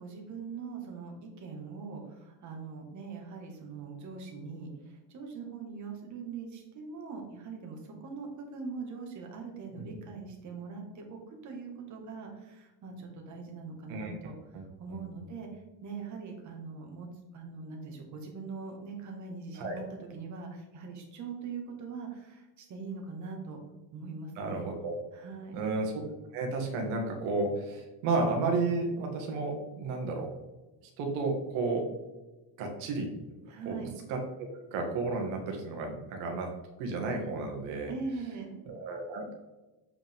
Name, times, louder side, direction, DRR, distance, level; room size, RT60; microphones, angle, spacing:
voice 1, 0.0-17.1 17.3-23.6 23.9-24.7 25.1-25.6 33.5-33.9 37.9-38.7, right 4 dB, 40° right, 2 dB, 1.8 m, -42 dB
voice 2, 14.9-15.3 19.6-19.8 24.4-25.0 25.5-26.0 26.3-30.3 31.0-31.9 32.6-33.1 33.7-33.8 34.1-36.5 36.8-37.9 38.7-39.3, right 3 dB, 85° right, 2 dB, 1.8 m, -32 dB
7.6 x 5.2 x 3.6 m, 1.1 s
cardioid pair, 160°, 45 cm